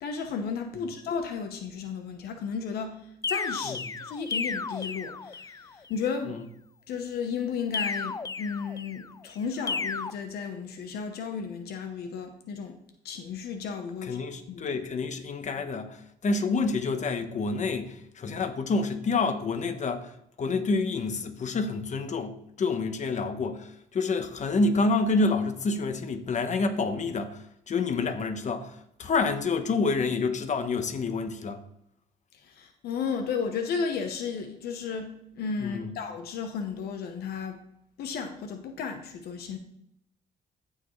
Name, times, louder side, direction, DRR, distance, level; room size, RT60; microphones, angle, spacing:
voice 1, 0.0-6.4 6.9-12.8 13.0-14.2 14.5-14.7 32.4-37.6 38.0-39.6, left 6 dB, 85° left, 1.0 m, -34 dB
sound 1, 3.2-5.7 7.7-9.1 9.7-10.1, left 4 dB, 20° left, 0.3 m, -33 dB
voice 2, 14.0-31.6 35.6-35.9, left 3 dB, 50° left, 1.1 m, -28 dB
14.5 x 4.9 x 3.3 m
cardioid pair, 85°, 16 cm